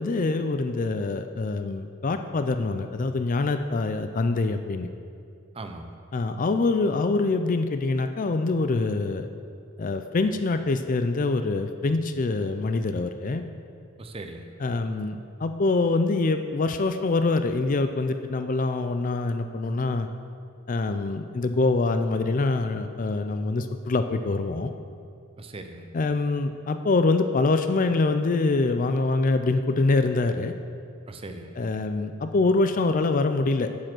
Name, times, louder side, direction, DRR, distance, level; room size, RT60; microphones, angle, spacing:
voice 1, 0.0-4.9 6.1-9.3 9.8-13.4 14.6-20.1 20.7-24.7 25.9-30.5 31.6-33.7, left 3 dB, 35° left, 8 dB, 0.4 m, -25 dB
voice 2, 5.5-6.0 14.0-14.5 25.4-25.9 31.1-31.6, right 2 dB, 25° right, 6 dB, 0.6 m, -39 dB
8.9 x 7.6 x 6.1 m, 2.3 s
head